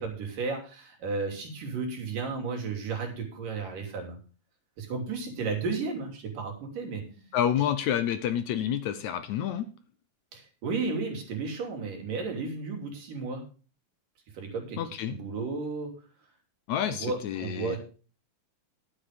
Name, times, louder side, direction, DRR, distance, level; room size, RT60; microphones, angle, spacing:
voice 1, 0.0-4.2 4.8-7.0 10.3-13.4 14.3-14.8 15.1-15.9 16.9-17.8, right 4 dB, 75° right, 2 dB, 4.5 m, -33 dB
voice 2, 7.3-9.7 14.8-15.2 16.7-17.8, left 10 dB, 70° left, 11 dB, 2.0 m, -29 dB
11.5 x 8.5 x 4.9 m, 0.35 s
omnidirectional pair, 3.8 m